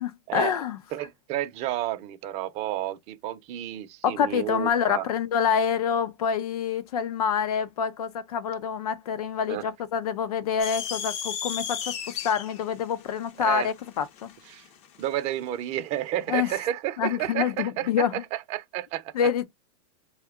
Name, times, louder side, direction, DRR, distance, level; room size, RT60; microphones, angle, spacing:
voice 1, 0.0-0.8 4.0-11.9 12.2-14.3 16.3-16.5 17.0-18.1 19.1-19.4, left 7 dB, 80° left, 0.7 m, -26 dB
voice 2, 0.9-5.1 9.5-9.6 13.4-13.7 14.5-14.7 15.0-19.1, right 13 dB, 35° right, 0.6 m, -31 dB
sound 1, 10.6-15.1, left 8 dB, 35° left, 0.6 m, -35 dB
2.8 x 2.2 x 3.5 m
supercardioid pair, 140°, 19 cm